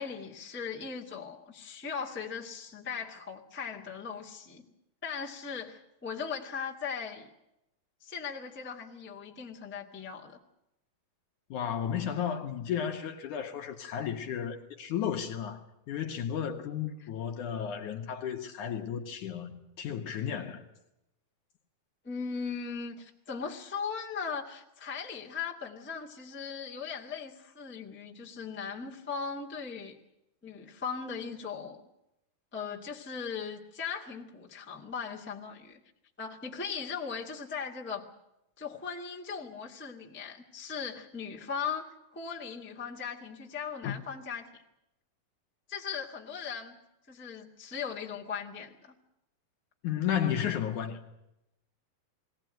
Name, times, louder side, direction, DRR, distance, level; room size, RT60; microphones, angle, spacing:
voice 1, 0.0-4.7 5.0-7.3 8.0-10.4 22.0-30.0 30.4-31.8 32.5-35.8 36.2-38.0 38.6-44.5 45.7-46.8 47.1-48.9, left 6 dB, 5° left, 1.2 m, -38 dB
voice 2, 11.5-15.6 15.9-20.6 43.8-43.9 49.8-51.0, left 8 dB, 65° left, 2.5 m, -33 dB
21.0 x 17.5 x 9.1 m
omnidirectional pair, 4.3 m